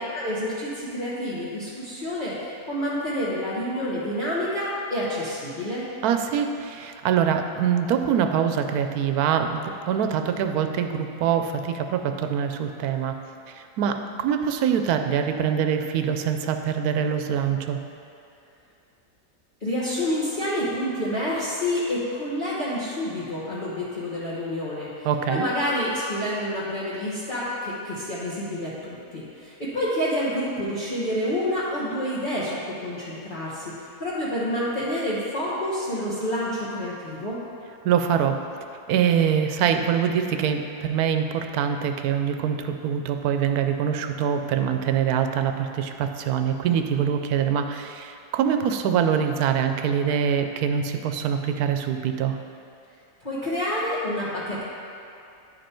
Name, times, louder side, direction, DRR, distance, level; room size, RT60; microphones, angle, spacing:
voice 1, 0.1-5.9 19.6-33.6 34.0-37.4 53.2-54.6, left 1 dB, 35° left, -10 dB, 1.3 m, -28 dB
voice 2, 6.0-13.1 13.5-17.8 25.0-25.4 37.8-38.4 38.9-52.4, right 8 dB, 85° right, 6 dB, 1.1 m, -24 dB
10.5 x 5.3 x 4.4 m, 2.7 s
omnidirectional pair, 1.6 m